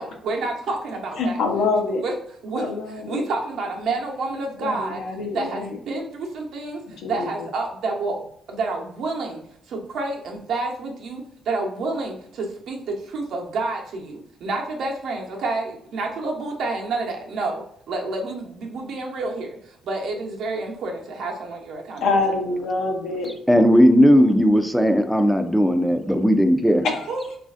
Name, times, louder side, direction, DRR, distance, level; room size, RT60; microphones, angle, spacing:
voice 1, 0.0-1.4 2.0-2.1 2.4-2.6 3.1-5.0 5.3-8.2 8.5-9.4 9.7-17.6 17.9-22.0 27.1-27.2, right 3 dB, 75° right, 1 dB, 0.7 m, -29 dB
voice 2, 1.2-2.0 2.5-3.3 4.6-5.8 6.9-7.5 22.0-23.4 26.8-27.1, left 3 dB, 80° left, 2 dB, 0.6 m, -25 dB
voice 3, 23.5-26.8, equal, ahead, 7 dB, 0.3 m, -16 dB
3.1 x 2.5 x 2.4 m, 0.67 s
cardioid pair, 90°, 0 cm